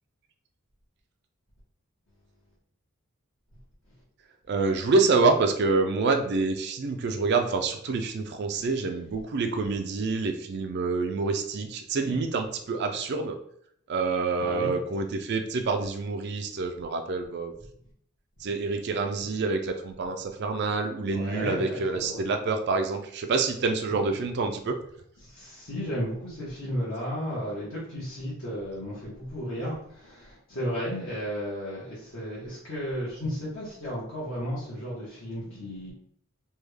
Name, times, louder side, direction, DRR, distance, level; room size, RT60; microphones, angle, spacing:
voice 1, 4.5-13.4 13.9-17.5 18.4-24.8, right 3 dB, 50° right, 6 dB, 0.4 m, -27 dB
voice 2, 14.4-14.8 21.1-22.3 23.9-24.1 25.2-35.9, equal, 65° left, -9 dB, 1.2 m, -34 dB
3.4 x 2.3 x 3.3 m, 0.66 s
head